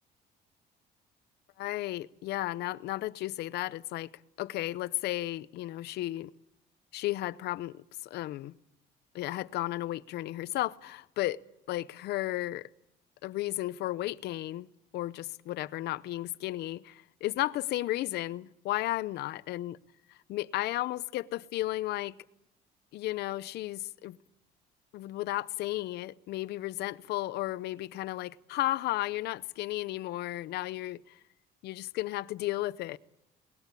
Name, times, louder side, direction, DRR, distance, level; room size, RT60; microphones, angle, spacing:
voice 1, 1.6-4.1 4.4-6.3 6.9-8.5 9.1-11.4 11.7-12.7 13.2-14.7 14.9-19.8 20.3-22.2 22.9-24.2 24.9-31.2 31.6-33.0, left 16 dB, 75° left, 0.7 m, -34 dB
22.0 x 19.0 x 8.3 m
cardioid pair, 110°, 17 cm